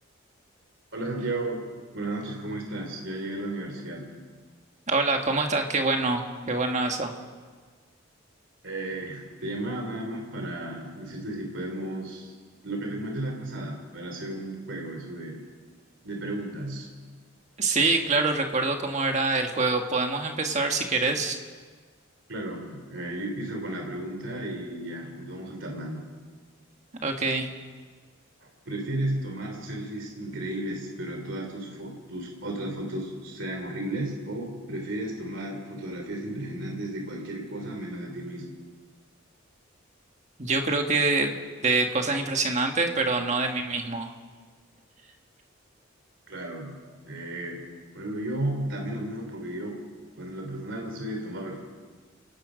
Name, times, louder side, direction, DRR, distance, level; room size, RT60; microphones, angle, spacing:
voice 1, 0.9-1.6 1.9-4.1 8.6-12.3 12.6-15.4 16.0-16.9 22.3-26.1 28.6-38.5 46.3-46.8 47.1-47.6 47.9-49.8 50.2-51.6, right 1 dB, 60° right, 2 dB, 3.3 m, -34 dB
voice 2, 4.9-7.1 17.6-21.4 27.0-27.5 40.4-41.4 41.6-44.1, right 3 dB, 35° right, 4 dB, 1.6 m, -25 dB
28.5 x 17.5 x 5.2 m, 1.5 s
head